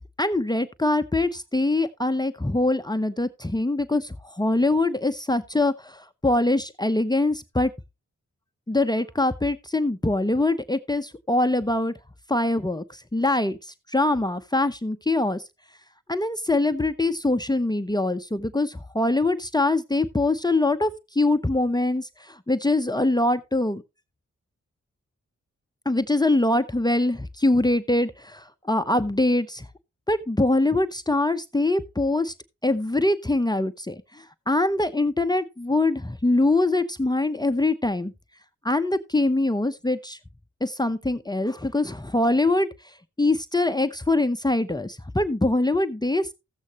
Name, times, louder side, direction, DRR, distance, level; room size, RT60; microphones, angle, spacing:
voice 1, 0.2-7.7 8.7-11.9 12.3-15.4 16.1-23.8 25.8-29.7 30.1-32.3 32.6-38.1 38.6-40.2 40.6-42.7 43.2-46.3, left 2 dB, 15° left, 0.9 m, -23 dB
14.5 x 8.1 x 3.0 m
supercardioid pair, 40°, 30 cm